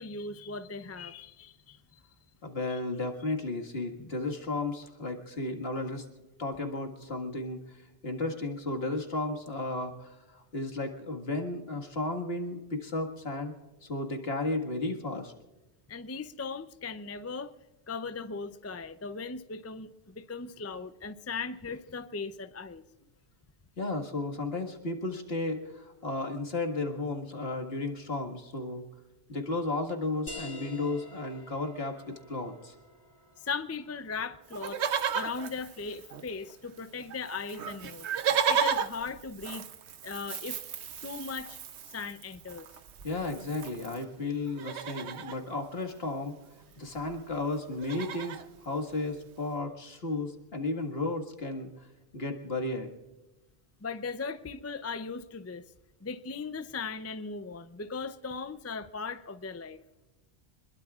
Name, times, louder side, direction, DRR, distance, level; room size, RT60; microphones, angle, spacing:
voice 1, 0.0-2.0 15.9-17.5 17.9-22.8 33.4-34.8 35.1-38.1 38.5-39.6 40.0-40.6 41.0-41.6 41.9-42.7 53.8-55.6 56.0-59.8, left 4 dB, 20° left, 11 dB, 0.4 m, -38 dB
voice 2, 2.4-6.1 6.4-13.5 13.8-15.3 23.8-28.8 29.3-32.8 43.0-46.4 46.8-51.9 52.1-52.9, left 2 dB, 65° left, 3 dB, 2.0 m, -34 dB
sound 1, 30.3-35.6, left 2 dB, 50° left, 3.6 m, -48 dB
Livestock farm animals working animals, 34.5-36.5 36.8-36.9 37.1-44.0 44.5-45.4 46.6-46.7 46.9-47.2 47.5-48.5 49.1-49.2, right 7 dB, 80° right, 1.1 m, -34 dB
27.0 x 21.5 x 2.4 m, 1.1 s
omnidirectional pair, 1.1 m